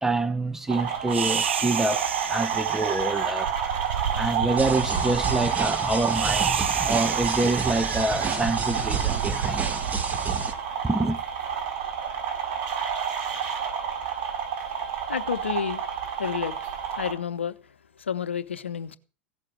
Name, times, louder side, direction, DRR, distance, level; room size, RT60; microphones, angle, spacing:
voice 1, 0.0-3.5 4.1-9.7 10.8-11.2, right 2 dB, 5° right, 0.9 m, -27 dB
sound 1, 0.7-17.1, right 7 dB, 55° right, 5.9 m, -29 dB
sound 2, 1.1-11.5, right 8 dB, 85° right, 0.8 m, -32 dB
sound 3, 4.6-10.5, right 4 dB, 25° right, 1.9 m, -31 dB
voice 2, 15.1-15.8 16.2-16.5 17.0-17.5 18.1-19.0, left 7 dB, 85° left, 0.8 m, -29 dB
16.0 x 6.6 x 7.5 m
hypercardioid pair, 85°, 6 cm